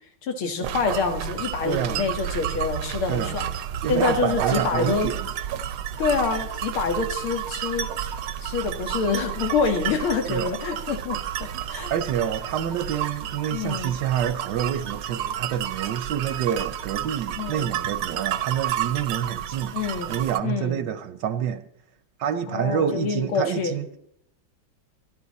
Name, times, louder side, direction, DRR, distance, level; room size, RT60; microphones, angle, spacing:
voice 1, 0.2-3.5 3.9-5.1 6.0-7.9 8.4-11.9 13.5-13.9 17.4-17.7 19.7-20.2 20.4-20.8 22.5-24.0, left 5 dB, 90° left, 2.5 m, -26 dB
sound 1, 0.6-20.4, right 10 dB, 90° right, 1.7 m, -31 dB
voice 2, 1.6-2.0 3.1-3.4 3.8-5.2 10.3-10.5 11.9-19.7 20.1-21.6 22.2-23.9, right 9 dB, 70° right, 1.2 m, -27 dB
22.5 x 12.0 x 4.1 m
omnidirectional pair, 2.3 m